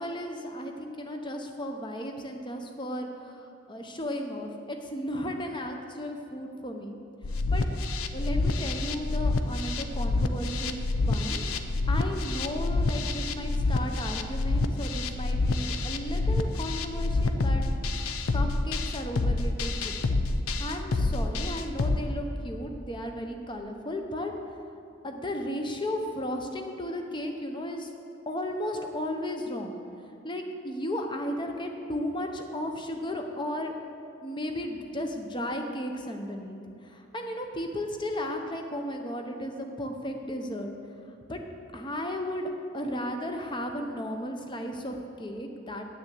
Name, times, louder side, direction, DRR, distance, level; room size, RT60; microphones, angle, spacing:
voice 1, 0.0-7.0 7.3-7.7 8.1-10.8 11.1-17.6 18.3-20.0 20.6-24.3 25.0-27.9 28.3-29.7 30.0-33.7 34.2-40.7 41.3-41.4 41.7-45.8, left 1 dB, 20° left, 4 dB, 0.8 m, -35 dB
sound 1, 7.2-22.0, left 2 dB, 85° left, 0.6 m, -27 dB
10.0 x 6.8 x 7.6 m, 2.5 s
head